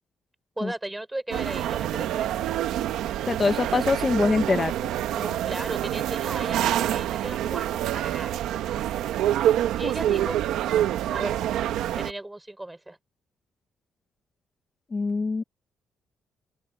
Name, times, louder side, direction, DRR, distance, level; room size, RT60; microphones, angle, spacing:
voice 1, 0.6-2.5 5.1-8.8 9.8-10.4 11.1-11.5 11.9-13.0, right 1 dB, 10° right, 4.5 m, -36 dB
sound 1, 1.3-12.1, right 12 dB, 85° right, 1.4 m, -26 dB
voice 2, 3.3-4.7 14.9-15.4, left 4 dB, 30° left, 1.0 m, -23 dB
open air
cardioid pair, 90°, 0 cm